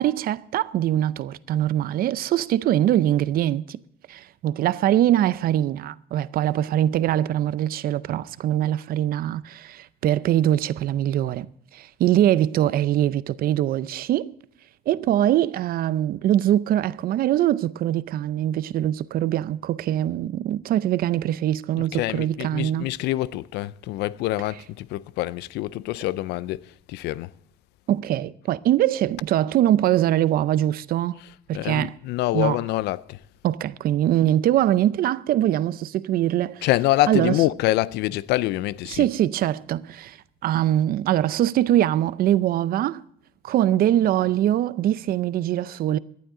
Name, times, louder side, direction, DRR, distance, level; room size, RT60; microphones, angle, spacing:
voice 1, 0.0-3.8 4.1-11.5 11.7-14.3 14.9-22.9 27.9-31.2 31.5-31.9 32.3-32.6 33.4-36.7 37.1-37.4 38.9-40.2 40.4-43.0 43.4-46.0, right 12 dB, 60° right, 0.5 m, -22 dB
voice 2, 21.8-27.3 31.2-33.2 36.6-39.1, left 16 dB, 85° left, 0.4 m, -26 dB
18.0 x 11.5 x 3.7 m
cardioid pair, 110°, 17 cm